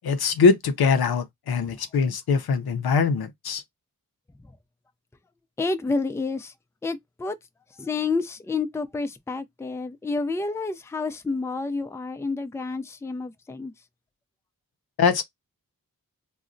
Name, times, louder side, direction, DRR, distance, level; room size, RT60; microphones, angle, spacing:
voice 1, 0.0-3.6 15.0-15.2, left 5 dB, 85° left, 0.6 m, -22 dB
voice 2, 5.6-6.5 6.8-7.4 7.8-13.7, left 3 dB, 10° left, 0.3 m, -29 dB
3.8 x 2.1 x 2.5 m
cardioid pair, 55°, 36 cm